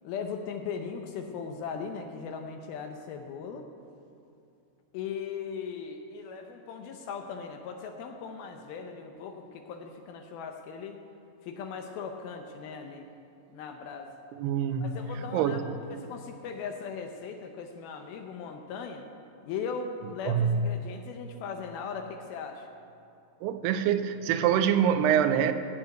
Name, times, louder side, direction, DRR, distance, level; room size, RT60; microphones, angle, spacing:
voice 1, 0.0-3.6 4.9-11.0 11.4-13.1 13.5-14.1 14.8-15.6 15.9-19.1 19.4-22.7, left 6 dB, 75° left, 4 dB, 2.5 m, -38 dB
voice 2, 14.4-14.9 15.3-15.6 20.3-20.6 23.4-25.5, right 9 dB, 85° right, 10 dB, 2.7 m, -25 dB
16.0 x 6.1 x 9.1 m, 2.7 s
omnidirectional pair, 4.7 m